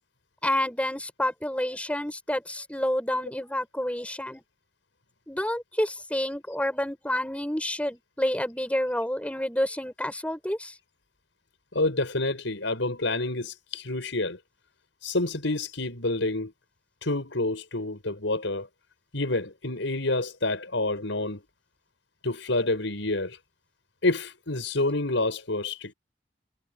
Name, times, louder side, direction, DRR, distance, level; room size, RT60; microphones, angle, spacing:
voice 1, 0.4-4.4 5.3-10.7, left 1 dB, 5° left, 6.4 m, -29 dB
voice 2, 11.7-14.4 15.0-16.5 17.0-18.7 19.1-21.4 22.2-23.4 24.0-25.9, left 2 dB, 85° left, 5.4 m, -28 dB
head